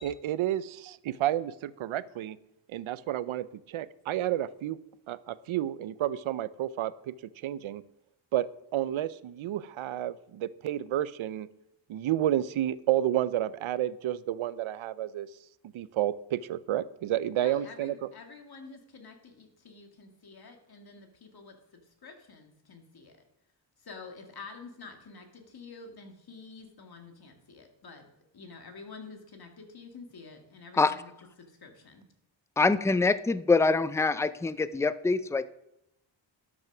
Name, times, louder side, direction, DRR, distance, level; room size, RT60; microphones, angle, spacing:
voice 1, 0.0-2.4 2.7-4.8 5.1-7.1 7.4-7.8 8.3-8.5 8.7-11.5 11.9-15.3 15.7-18.1, right 12 dB, 85° right, 17 dB, 0.6 m, -30 dB
voice 2, 17.4-23.2 23.8-28.1 28.3-31.1 31.4-32.1, left 4 dB, 50° left, 4 dB, 2.1 m, -48 dB
voice 3, 32.6-35.5, left 3 dB, 5° left, 14 dB, 0.4 m, -25 dB
12.0 x 6.2 x 6.0 m, 0.85 s
wide cardioid pair, 110°, 47 cm